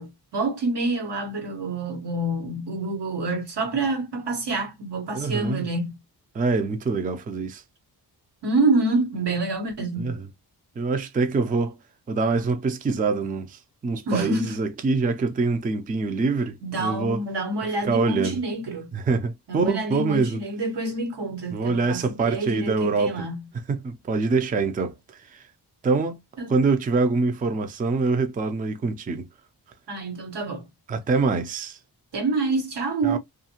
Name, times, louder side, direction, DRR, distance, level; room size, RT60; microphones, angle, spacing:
voice 1, 0.0-6.0 8.4-10.2 14.1-14.6 16.6-18.9 19.5-23.4 26.4-26.6 29.9-30.7 32.1-33.2, right 2 dB, 90° right, 1.3 m, -27 dB
voice 2, 5.1-5.7 6.3-7.6 10.0-10.2 10.8-11.8 12.1-17.2 17.8-18.4 18.9-20.4 21.5-23.2 23.7-24.9 25.3-25.4 25.8-26.2 26.5-29.2 30.9-31.8 33.0-33.2, right 4 dB, 20° right, 0.4 m, -25 dB
2.6 x 2.4 x 2.8 m
wide cardioid pair, 145°, 40 cm